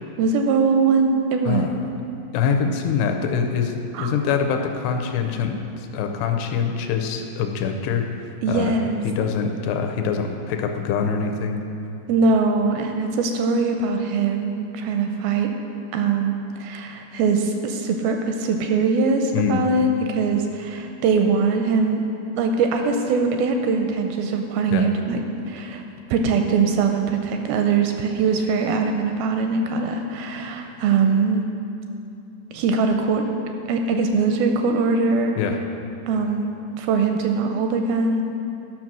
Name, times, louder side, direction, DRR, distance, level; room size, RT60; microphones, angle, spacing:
voice 1, 0.2-1.7 3.9-4.1 8.4-9.0 12.1-15.5 15.9-22.0 22.4-25.8 26.1-31.5 32.5-33.3 33.7-35.3 36.1-36.5 36.8-38.2, right 4 dB, 85° right, 4 dB, 2.2 m, -22 dB
voice 2, 1.5-1.8 2.3-8.1 8.5-8.8 9.0-11.6 19.3-19.6 24.7-24.9 35.4-35.6, left 6 dB, 85° left, 5 dB, 2.8 m, -24 dB
11.5 x 5.9 x 6.1 m, 2.7 s
omnidirectional pair, 4.6 m